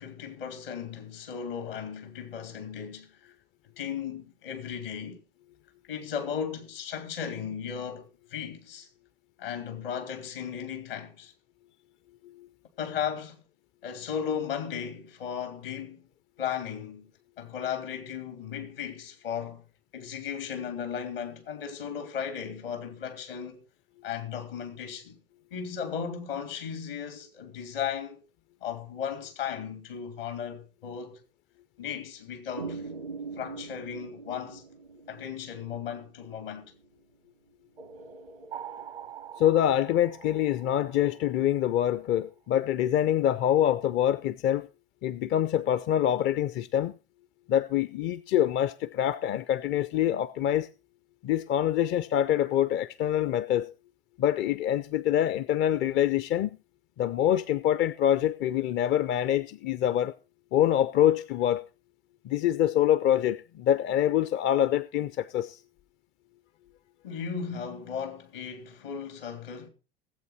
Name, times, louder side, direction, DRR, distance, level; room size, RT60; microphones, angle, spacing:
voice 1, 0.0-3.3 3.8-5.2 5.9-8.9 9.4-11.3 12.8-13.4 13.8-16.0 16.4-17.1 17.4-19.6 19.9-23.6 24.0-25.2 25.5-28.2 28.6-31.2 31.8-32.9 33.4-34.6 35.1-36.7 67.0-69.7, left 7 dB, 70° left, 2.9 m, -36 dB
sound 1, 32.6-36.8 37.8-41.6, right 5 dB, 85° right, 0.9 m, -43 dB
voice 2, 39.4-44.7 45.0-46.9 47.5-50.7 51.2-53.7 54.2-56.5 57.0-60.1 60.5-61.7 62.2-65.6, left 11 dB, 40° left, 0.6 m, -25 dB
18.0 x 8.2 x 4.3 m
figure-of-eight pair, 65°, 29 cm